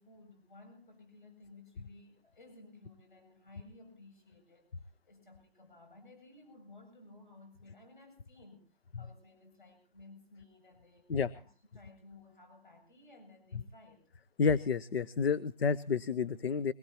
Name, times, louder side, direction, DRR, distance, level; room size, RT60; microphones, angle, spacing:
voice 1, 0.0-4.7 5.1-8.6 9.0-11.1 11.3-14.1, left 2 dB, 55° left, 6 dB, 7.6 m, -57 dB
voice 2, 14.4-16.7, left 5 dB, 70° left, 16 dB, 0.7 m, -30 dB
22.5 x 18.5 x 2.9 m, 0.37 s
hypercardioid pair, 175°, 31 cm